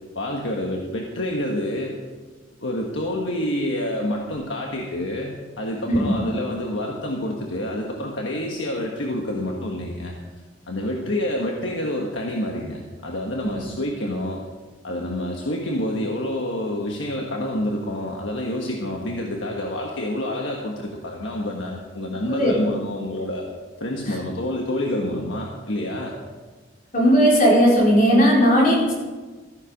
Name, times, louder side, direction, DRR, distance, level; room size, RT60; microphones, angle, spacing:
voice 1, 0.1-1.9 2.6-10.1 10.7-14.4 14.8-23.4 23.8-26.1, left 1 dB, 75° left, 0 dB, 1.4 m, -28 dB
voice 2, 26.9-28.9, equal, 45° left, -4 dB, 4.6 m, -16 dB
14.5 x 9.9 x 5.2 m, 1.3 s
head